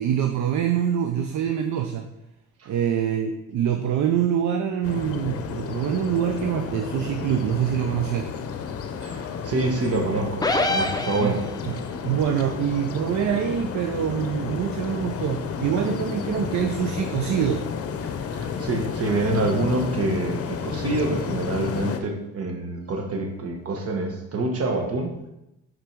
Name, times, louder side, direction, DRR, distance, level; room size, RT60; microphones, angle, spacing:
voice 1, 0.0-2.1 2.7-8.3 11.2-11.3 11.7-11.8 12.0-17.6, right 9 dB, 70° right, 6 dB, 0.5 m, -25 dB
sound 1, 4.8-22.0, left 6 dB, 50° left, 0.7 m, -32 dB
voice 2, 9.0-11.4 18.3-25.1, right 2 dB, 50° right, 2 dB, 1.3 m, -26 dB
sound 2, 10.4-11.8, left 2 dB, 15° left, 0.5 m, -25 dB
5.4 x 3.9 x 4.5 m, 0.88 s
cardioid pair, 90°, 30 cm